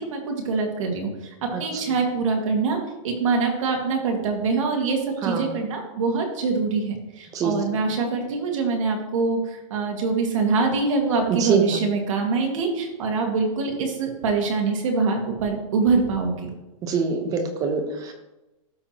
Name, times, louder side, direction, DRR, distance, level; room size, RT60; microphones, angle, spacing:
voice 1, 0.0-2.8 3.0-16.5, right 4 dB, 65° right, 2 dB, 1.9 m, -24 dB
voice 2, 11.3-11.8 16.8-18.1, right 5 dB, 20° right, 5 dB, 0.8 m, -24 dB
12.5 x 4.5 x 3.0 m, 1.0 s
supercardioid pair, 160°, 18 cm